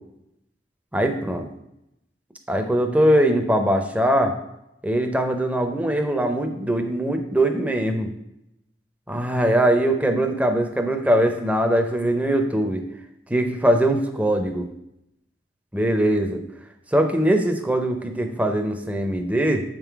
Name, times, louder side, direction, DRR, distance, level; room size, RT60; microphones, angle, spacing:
voice 1, 0.9-1.5 2.5-4.4 4.8-8.1 9.1-12.8 13.3-14.6 15.7-16.4 16.9-19.6, right 1 dB, 10° right, 5 dB, 0.6 m, -21 dB
7.4 x 3.8 x 4.6 m, 0.83 s
head